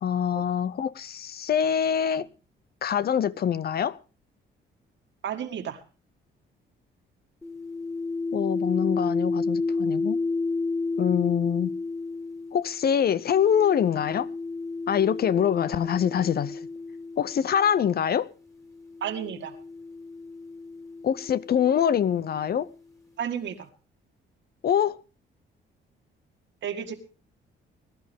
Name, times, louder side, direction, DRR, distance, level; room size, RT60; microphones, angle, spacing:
voice 1, 0.0-2.3 2.8-4.0 8.3-10.2 11.0-11.7 12.5-14.3 14.9-16.7 17.2-18.3 21.0-22.7 24.6-25.0, left 8 dB, 50° left, 0.7 m, -24 dB
voice 2, 5.2-5.8 19.0-19.6 23.2-23.7 26.6-26.9, right 8 dB, 65° right, 2.0 m, -32 dB
sound 1, 7.4-17.8 18.7-22.4, left 3 dB, 15° left, 2.8 m, -32 dB
20.5 x 11.5 x 3.6 m
cardioid pair, 90°, 20 cm